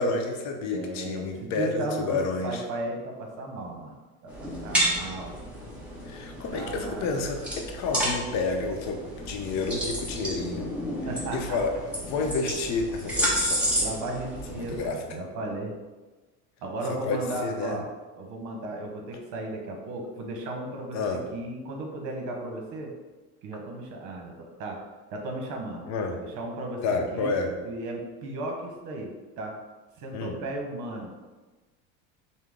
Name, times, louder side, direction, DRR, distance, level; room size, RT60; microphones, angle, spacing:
voice 1, 0.0-2.6 6.0-10.7 11.3-13.7 14.5-15.0 17.0-17.8 20.9-21.2 25.9-26.2 26.8-27.6 30.1-30.4, left 3 dB, 55° left, 4 dB, 0.7 m, -30 dB
voice 2, 0.7-3.9 4.2-5.4 6.5-7.1 11.1-11.6 13.8-15.7 16.6-17.9 18.2-22.9 23.4-24.8 25.1-27.3 27.6-29.6 30.0-31.1, right 2 dB, 60° right, 1 dB, 1.0 m, -35 dB
sound 1, 4.3-14.9, equal, 5° right, 1.0 m, -31 dB
5.6 x 2.1 x 3.5 m, 1.2 s
supercardioid pair, 125°, 34 cm